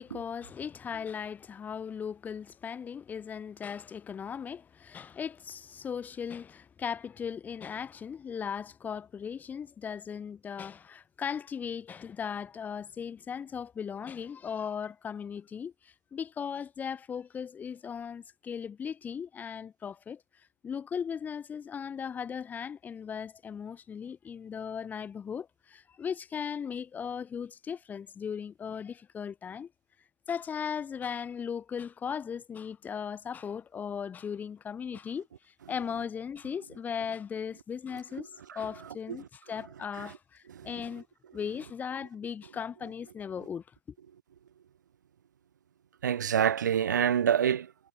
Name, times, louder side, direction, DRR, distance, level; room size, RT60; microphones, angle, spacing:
voice 1, 0.0-20.2 20.6-29.7 30.3-38.3 38.5-41.0 41.3-43.6, left 7 dB, 15° left, 2.4 m, -37 dB
voice 2, 46.0-47.7, right 8 dB, 70° right, 2.4 m, -26 dB
hypercardioid pair, 120°, 10 cm